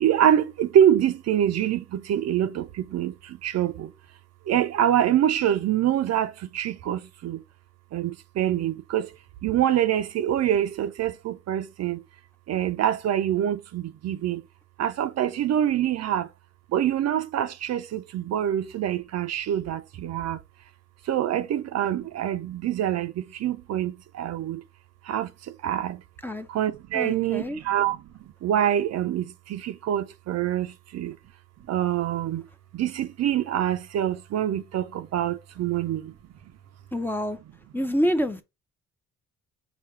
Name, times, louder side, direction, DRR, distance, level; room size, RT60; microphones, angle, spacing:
voice 1, 0.0-3.9 4.5-7.4 7.9-9.1 9.4-12.0 12.5-14.4 14.8-16.3 16.7-20.4 21.0-24.6 25.0-26.0 26.5-31.2 31.7-32.5 32.7-36.2, right 10 dB, 60° right, 0.5 m, -25 dB
voice 2, 26.9-27.6 36.9-37.4 37.7-38.4, equal, 5° left, 0.5 m, -27 dB
4.9 x 2.2 x 4.4 m
cardioid pair, 90°, 30 cm